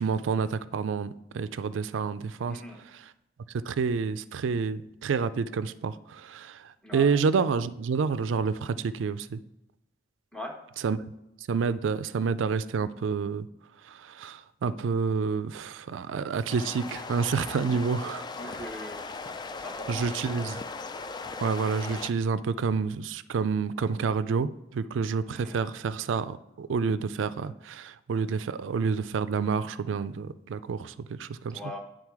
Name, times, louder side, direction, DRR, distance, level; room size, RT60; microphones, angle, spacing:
voice 1, 0.0-2.6 3.7-9.4 10.8-11.0 11.5-13.5 13.8-18.2 19.9-20.6 21.4-31.6, right 5 dB, 75° right, 14 dB, 0.4 m, -29 dB
voice 2, 2.5-2.8 6.8-7.1 10.3-10.5 18.4-19.0 19.5-20.6 25.3-25.6 31.5-31.8, left 1 dB, 5° left, 1 dB, 0.9 m, -41 dB
sound 1, 16.5-22.1, left 4 dB, 25° left, 0.3 m, -38 dB
9.8 x 3.9 x 4.7 m, 0.91 s
head